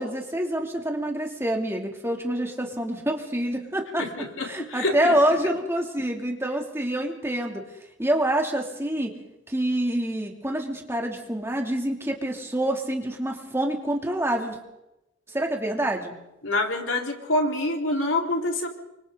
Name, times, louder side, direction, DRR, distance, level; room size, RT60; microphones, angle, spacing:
voice 1, 0.0-4.1 4.4-7.6 8.0-9.1 9.5-14.6 15.3-16.1, right 1 dB, 15° right, 1 dB, 2.9 m, -26 dB
voice 2, 4.0-5.2 16.4-18.7, left 2 dB, 90° left, 1 dB, 4.2 m, -26 dB
28.5 x 25.5 x 4.0 m, 0.92 s
head